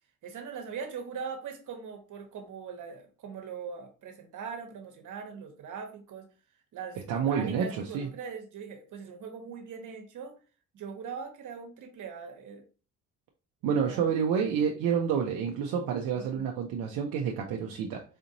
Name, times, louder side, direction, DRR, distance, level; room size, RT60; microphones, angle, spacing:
voice 1, 0.2-6.3 6.7-10.3 10.7-12.6 13.6-14.2 15.7-16.5, right 6 dB, 70° right, 4 dB, 1.1 m, -41 dB
voice 2, 7.1-7.7 7.9-8.1 13.6-18.0, right 7 dB, 90° right, 1 dB, 0.6 m, -28 dB
4.2 x 2.6 x 2.8 m, 0.36 s
cardioid pair, 95°, 33 cm